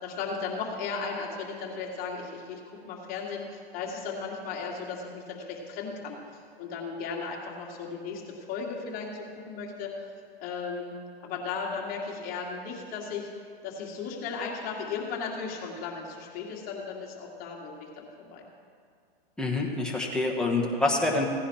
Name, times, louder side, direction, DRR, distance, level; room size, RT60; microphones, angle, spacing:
voice 1, 0.0-9.9 10.4-10.9 11.2-13.3 13.6-18.5, left 5 dB, 30° left, -2 dB, 2.2 m, -36 dB
voice 2, 19.4-21.3, left 2 dB, ahead, -1 dB, 1.2 m, -26 dB
16.5 x 10.0 x 4.3 m, 2.3 s
hypercardioid pair, 140°, 30 cm